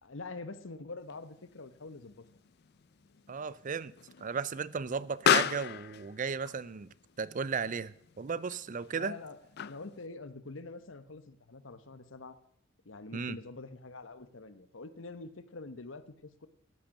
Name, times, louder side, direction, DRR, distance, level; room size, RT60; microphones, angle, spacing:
voice 1, 0.0-2.3 8.9-12.4 12.8-16.5, left 3 dB, 85° left, 1.1 m, -45 dB
Explosion, 1.1-10.1, left 8 dB, 55° left, 0.4 m, -36 dB
voice 2, 3.3-3.9 4.2-9.1 13.1-13.4, right 5 dB, 45° right, 0.5 m, -35 dB
13.5 x 9.0 x 6.5 m
head